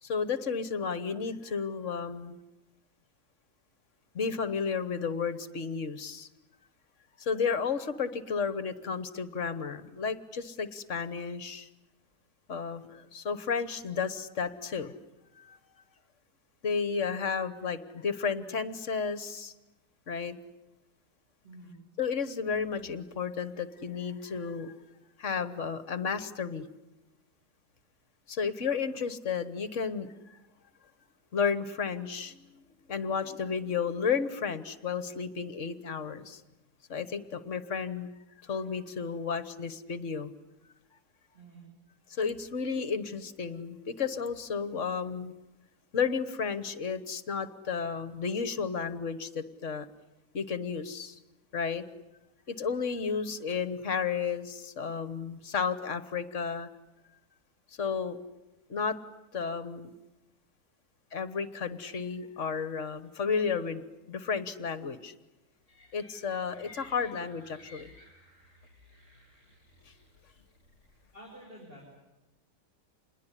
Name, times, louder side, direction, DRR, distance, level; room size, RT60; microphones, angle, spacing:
voice 1, 0.0-2.4 4.1-6.3 7.2-11.7 12.5-14.9 15.4-15.6 16.6-19.5 20.1-20.4 22.0-24.7 25.2-26.7 28.3-30.1 31.3-32.6 32.9-36.4 36.9-38.1 38.4-40.3 42.1-45.3 45.9-49.9 50.3-51.2 51.5-51.8 52.5-56.7 57.8-58.2 58.7-59.0 59.3-59.9 61.1-65.1 65.9-67.9, left 6 dB, 50° left, 13 dB, 1.5 m, -32 dB
sound 1, 65.7-71.1, left 1 dB, 60° right, 8.0 m, -56 dB
voice 2, 71.1-72.0, right 1 dB, 30° right, -4 dB, 6.7 m, -49 dB
27.5 x 21.0 x 9.9 m, 1.0 s
omnidirectional pair, 1.8 m